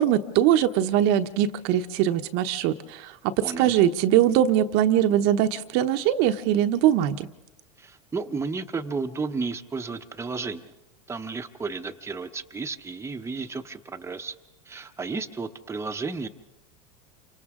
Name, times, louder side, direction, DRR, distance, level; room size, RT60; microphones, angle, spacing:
voice 1, 0.0-3.1 3.6-7.3, right 11 dB, 60° right, 8 dB, 1.0 m, -22 dB
voice 2, 3.4-3.7 7.8-10.6 11.1-14.3 14.7-16.3, right 4 dB, 15° right, 6 dB, 1.0 m, -33 dB
29.0 x 25.5 x 3.7 m, 0.99 s
hypercardioid pair, 100°, 20 cm